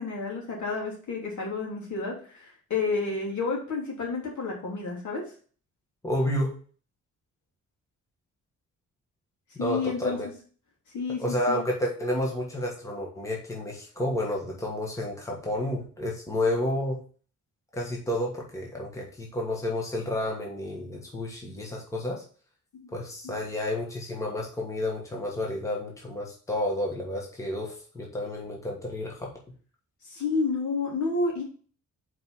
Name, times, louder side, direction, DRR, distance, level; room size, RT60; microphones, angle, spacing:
voice 1, 0.0-5.2 9.6-10.2 10.9-11.6 22.7-22.8 23.2-23.4 30.0-31.4, left 4 dB, 70° left, -2 dB, 3.0 m, -30 dB
voice 2, 6.0-6.5 9.5-10.3 11.2-17.0 17.7-22.2 22.9-29.3, left 1 dB, 10° left, -1 dB, 1.4 m, -30 dB
5.3 x 4.8 x 5.6 m, 0.41 s
wide cardioid pair, 180°, 31 cm